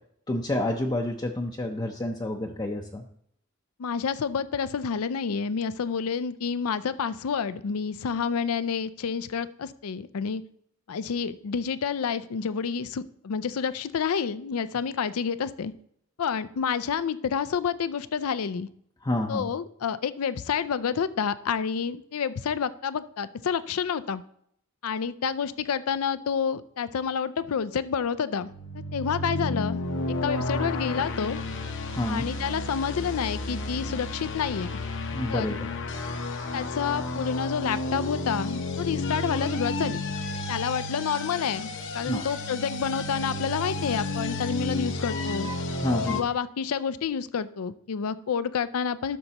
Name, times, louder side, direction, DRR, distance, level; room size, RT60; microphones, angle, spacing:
voice 1, 0.3-3.0 19.0-19.5 31.9-32.3 35.1-35.7 42.1-42.3 45.8-46.2, left 1 dB, 20° left, 1 dB, 0.6 m, -29 dB
voice 2, 3.8-10.4 10.9-15.7 16.2-18.7 19.3-24.2 24.8-28.5 28.9-29.8 30.2-31.4 32.1-34.8 35.3-35.5 36.5-40.0 40.5-45.5 46.0-49.2, left 6 dB, 80° left, 15 dB, 0.5 m, -29 dB
sound 1, 28.4-46.2, left 2 dB, 60° left, 0.9 m, -32 dB
12.0 x 6.7 x 2.9 m, 0.69 s
head